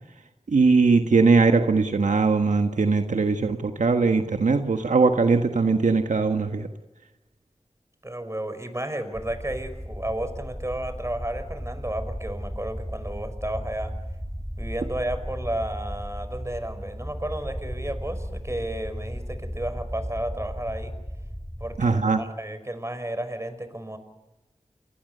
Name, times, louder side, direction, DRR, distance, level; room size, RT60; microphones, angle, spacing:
voice 1, 0.5-6.7 21.8-22.2, right 4 dB, 80° right, 6 dB, 1.5 m, -20 dB
voice 2, 8.0-13.9 14.6-20.9 21.6-24.0, right 1 dB, 20° right, 10 dB, 5.2 m, -32 dB
sound 1, 9.1-21.9, equal, ahead, 2.9 m, -35 dB
29.5 x 22.5 x 6.8 m, 1.1 s
cardioid pair, 40°, 13 cm